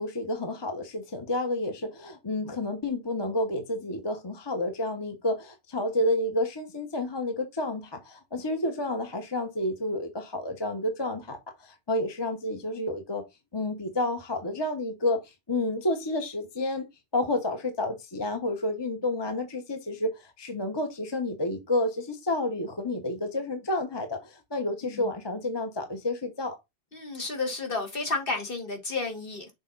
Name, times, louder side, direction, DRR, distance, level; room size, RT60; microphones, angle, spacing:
voice 1, 0.0-13.3 13.5-16.9 17.1-26.6, left 1 dB, 25° left, 1.0 m, -30 dB
voice 2, 26.9-29.5, left 3 dB, 55° left, 2.0 m, -32 dB
6.6 x 4.1 x 3.8 m
omnidirectional pair, 1.1 m